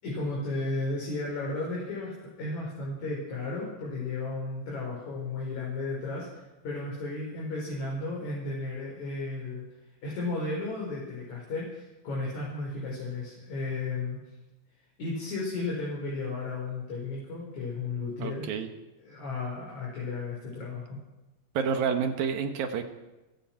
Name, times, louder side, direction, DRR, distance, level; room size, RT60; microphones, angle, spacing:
voice 1, 0.0-9.7 10.0-14.2 15.0-18.5 19.0-21.0, left 3 dB, 55° left, -4 dB, 6.2 m, -34 dB
voice 2, 18.2-18.7 21.5-22.8, right 6 dB, 85° right, 7 dB, 3.5 m, -29 dB
29.5 x 16.0 x 6.1 m, 1.1 s
omnidirectional pair, 4.0 m